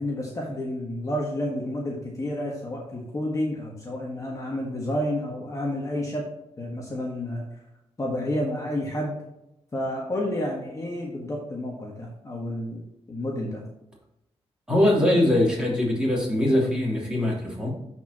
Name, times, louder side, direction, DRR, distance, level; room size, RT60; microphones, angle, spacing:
voice 1, 0.0-6.3 6.6-7.6 8.0-9.2 9.7-12.8 13.1-13.6, left 1 dB, 30° left, -2 dB, 1.5 m, -30 dB
voice 2, 14.7-17.7, left 1 dB, 5° right, -4 dB, 3.2 m, -22 dB
12.5 x 4.6 x 2.9 m, 0.87 s
cardioid pair, 100°, 11 cm